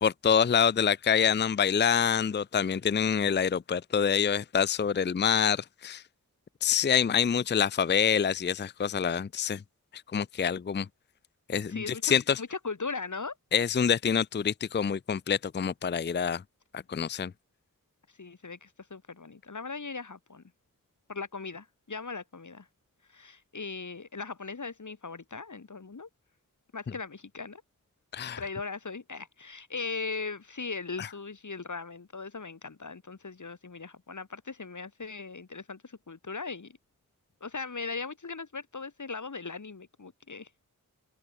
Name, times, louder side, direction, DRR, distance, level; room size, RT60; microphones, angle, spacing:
voice 1, 0.0-6.0 6.6-9.6 10.1-10.9 11.5-12.4 13.5-16.4 16.7-17.3 28.1-28.4 31.0-31.1, left 7 dB, 35° left, 0.5 m, -26 dB
voice 2, 11.7-13.3 18.2-20.4 21.1-22.7 23.1-26.1 26.7-27.6 28.4-36.8 37.4-40.5, left 4 dB, 60° left, 3.1 m, -39 dB
open air
wide cardioid pair, 65°, 33 cm